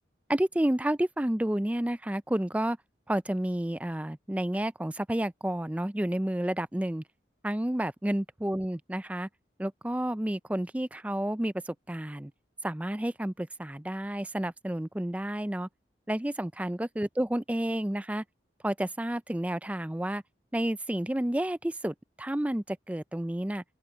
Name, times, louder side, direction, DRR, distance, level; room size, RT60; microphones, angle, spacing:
voice 1, 0.3-2.8 3.1-7.0 7.4-9.3 9.6-12.3 12.6-15.7 16.1-18.2 18.6-20.2 20.5-23.6, right 1 dB, 10° right, 0.4 m, -30 dB
open air
head